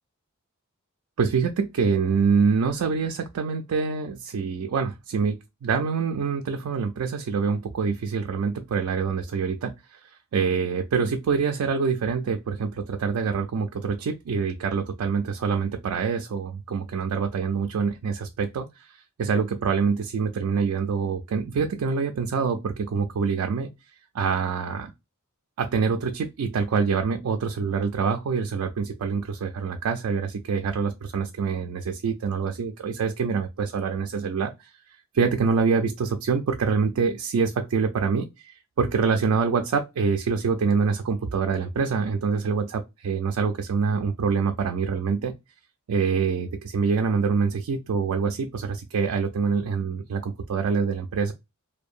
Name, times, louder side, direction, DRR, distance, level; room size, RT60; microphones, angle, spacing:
voice 1, 1.2-23.7 24.1-24.9 25.6-34.5 35.1-45.3 45.9-51.3, right 5 dB, 85° right, 0.4 m, -25 dB
2.7 x 2.1 x 2.4 m
head